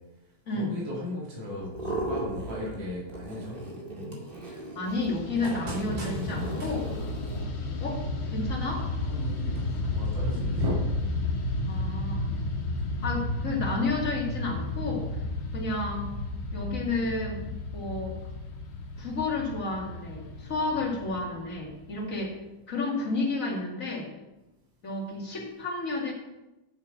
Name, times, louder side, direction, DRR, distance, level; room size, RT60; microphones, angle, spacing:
voice 1, 0.5-3.6 5.4-6.7 7.2-7.4 9.0-10.8 20.7-21.0, left 1 dB, 70° right, -5 dB, 3.3 m, -36 dB
sound 1, 1.6-2.8 3.1-7.4, right 1 dB, 25° right, 2.3 m, -36 dB
voice 2, 4.5-6.8 7.8-8.9 11.7-12.2 13.0-15.3 15.5-16.1 16.5-18.2 19.0-22.4 22.7-24.1 24.8-26.1, left 3 dB, 40° left, -1 dB, 2.5 m, -31 dB
Fixed-wing aircraft airplane, 4.9-22.3, left 2 dB, 90° left, 2.7 m, -33 dB
9.1 x 7.4 x 6.0 m, 1.0 s
omnidirectional pair, 2.2 m